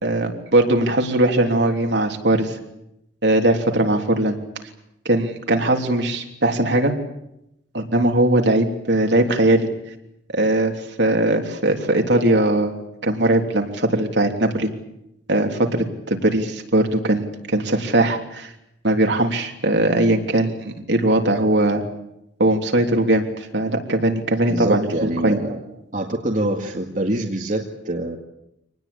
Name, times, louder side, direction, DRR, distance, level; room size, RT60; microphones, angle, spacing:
voice 1, 0.0-2.5 3.2-4.4 5.1-6.9 7.7-9.7 10.3-10.7 11.0-12.7 13.0-14.7 15.3-18.5 18.8-21.8 22.4-23.2 23.5-25.4, right 1 dB, 65° right, 3 dB, 3.3 m, -20 dB
voice 2, 24.5-25.6 25.9-28.2, right 1 dB, 45° right, 1 dB, 2.1 m, -25 dB
26.0 x 19.5 x 8.7 m, 0.83 s
head